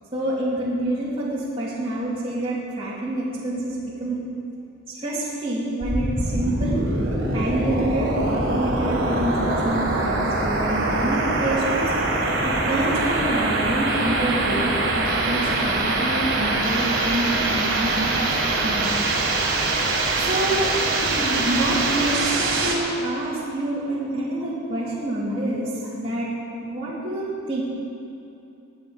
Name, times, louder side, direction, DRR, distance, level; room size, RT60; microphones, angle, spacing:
voice 1, 0.1-4.2 4.9-6.8 7.3-11.9 12.4-19.0 20.2-20.7 21.0-26.3 26.6-27.6, right 1 dB, 25° right, -9 dB, 2.9 m, -27 dB
sound 1, 5.8-22.8, right 2 dB, 60° right, 2.9 m, -23 dB
23.0 x 9.2 x 5.2 m, 2.8 s
head